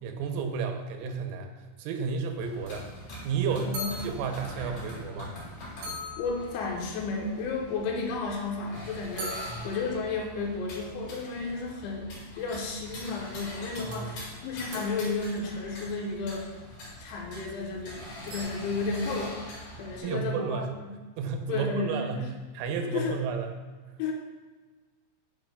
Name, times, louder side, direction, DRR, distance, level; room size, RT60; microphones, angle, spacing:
voice 1, 0.0-1.5 1.8-2.9 3.2-3.8 4.0-5.3 9.5-9.7 13.8-14.1 20.0-20.7 21.2-22.2 22.5-23.5, right 5 dB, 90° right, 5 dB, 3.3 m, -32 dB
sound 1, 2.4-20.0, equal, 60° left, 3.2 m, -43 dB
sound 2, 3.7-4.4 5.1-5.2 5.4-5.5 5.8-6.9 9.2-10.4 12.7-12.8 13.9-15.5 18.3-18.4, equal, 60° right, 2.4 m, -40 dB
voice 2, 6.2-16.5 17.0-19.4 19.8-20.9 21.5-22.3 22.9-23.2 24.0-24.1, left 4 dB, 80° left, 0 dB, 3.1 m, -33 dB
8.9 x 5.6 x 2.2 m, 1.3 s
omnidirectional pair, 5.6 m